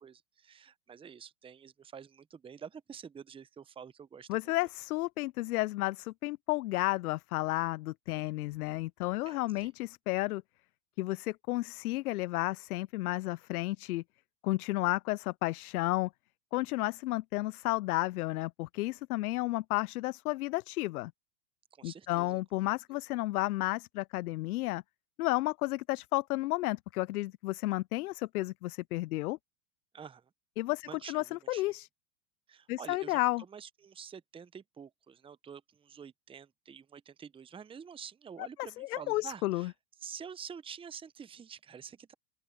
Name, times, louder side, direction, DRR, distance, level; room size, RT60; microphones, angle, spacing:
voice 1, 0.0-4.5 9.3-9.7 21.8-22.4 29.9-30.3 30.9-31.8 32.5-39.7 40.0-42.1, right 7 dB, 10° right, 0.8 m, -48 dB
voice 2, 4.3-10.4 11.0-14.0 14.4-16.1 16.5-21.1 21.8-24.8 25.2-29.4 30.6-31.9 32.7-33.4 38.6-39.7, left 19 dB, 60° left, 0.7 m, -32 dB
open air
hypercardioid pair, 105°, 50 cm